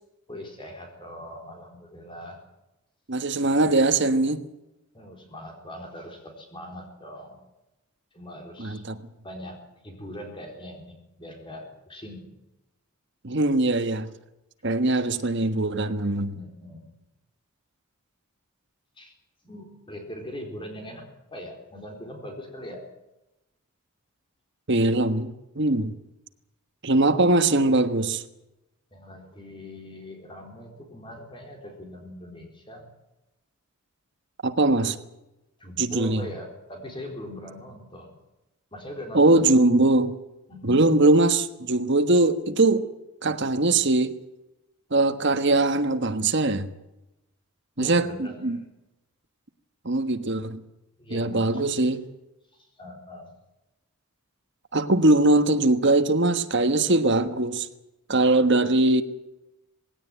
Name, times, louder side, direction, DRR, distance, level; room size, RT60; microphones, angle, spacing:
voice 1, 0.3-2.4 4.9-7.4 8.1-8.8 9.2-12.3 16.3-16.9 19.0-19.1 19.4-22.9 28.9-32.9 35.6-38.2 38.7-39.6 40.5-40.8 47.8-48.6 51.0-51.9 52.5-53.3, left 1 dB, 25° left, 4.1 m, -41 dB
voice 2, 3.1-4.4 8.6-9.0 13.2-14.1 14.6-16.3 24.7-25.9 26.8-28.2 34.4-35.0 35.8-36.2 39.1-40.2 40.6-42.9 43.2-44.2 44.9-46.7 47.8-48.6 49.8-50.6 51.1-52.0 54.7-57.7 58.1-59.0, right 2 dB, 55° right, 1.4 m, -21 dB
19.5 x 17.0 x 9.2 m
head